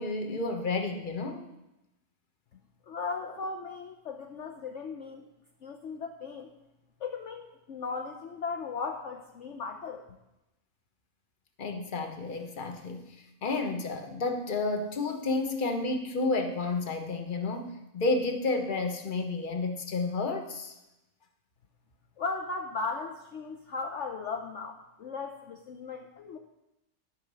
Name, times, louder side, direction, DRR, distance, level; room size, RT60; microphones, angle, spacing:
voice 1, 0.0-1.5 3.2-3.3 11.6-20.7, left 3 dB, 35° left, 5 dB, 1.2 m, -31 dB
voice 2, 2.9-5.3 5.6-6.5 7.0-10.0 22.2-26.4, left 4 dB, 60° left, 3 dB, 1.0 m, -37 dB
12.0 x 5.9 x 6.8 m, 0.94 s
omnidirectional pair, 1.6 m